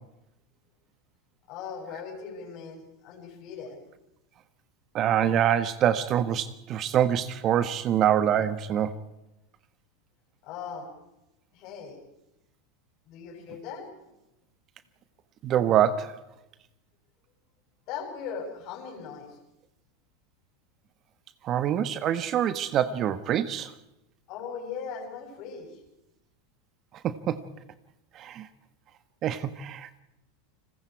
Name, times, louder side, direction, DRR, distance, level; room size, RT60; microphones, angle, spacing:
voice 1, 1.5-3.8 10.4-10.9 11.5-12.0 13.1-14.1 17.9-19.4 24.3-25.8, left 6 dB, 55° left, 7.5 m, -39 dB
voice 2, 4.9-9.0 15.4-16.2 21.4-23.7 27.0-27.5 28.1-28.5 29.2-30.0, right 10 dB, 40° right, 1.3 m, -25 dB
30.0 x 21.0 x 4.8 m
hypercardioid pair, 100°, 0 cm